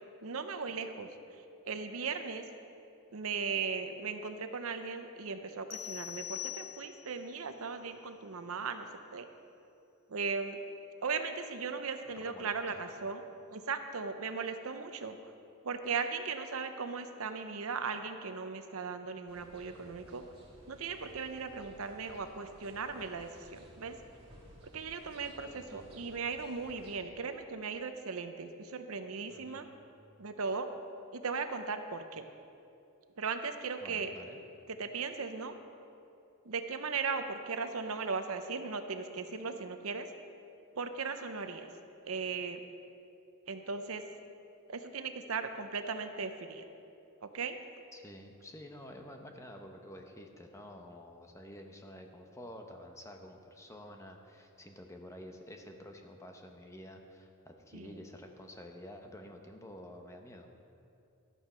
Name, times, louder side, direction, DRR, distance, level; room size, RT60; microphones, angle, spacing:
voice 1, 0.2-1.1 1.7-2.4 3.1-9.3 10.1-10.6 11.0-13.2 13.5-15.3 15.6-20.2 20.7-24.0 24.7-29.7 30.2-30.7 31.1-32.3 33.2-34.1 34.7-35.6 36.4-40.1 40.8-41.7 42.1-42.6 43.5-44.0 44.7-46.6 47.2-47.6 57.7-58.0, right 5 dB, 70° right, 8 dB, 0.7 m, -37 dB
sound 1, 5.7-7.2, left 13 dB, 90° left, 0.4 m, -42 dB
voice 2, 12.1-12.8 25.5-25.9 29.3-29.7 33.8-34.4 47.9-60.5, left 1 dB, 15° left, 3 dB, 0.8 m, -50 dB
sound 2, 19.3-27.0, equal, 25° right, 1.9 m, -57 dB
12.5 x 9.1 x 5.6 m, 2.6 s
head